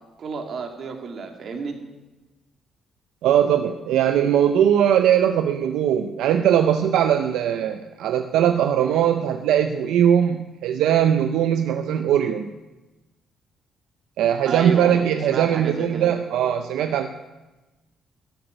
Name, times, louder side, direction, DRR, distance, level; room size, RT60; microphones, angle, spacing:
voice 1, 0.2-1.8 14.5-16.1, right 5 dB, 55° right, 3 dB, 2.4 m, -30 dB
voice 2, 3.2-12.5 14.2-17.1, right 9 dB, 85° right, 7 dB, 0.6 m, -20 dB
14.0 x 8.0 x 9.3 m, 1.1 s
cardioid pair, 90°, 0 cm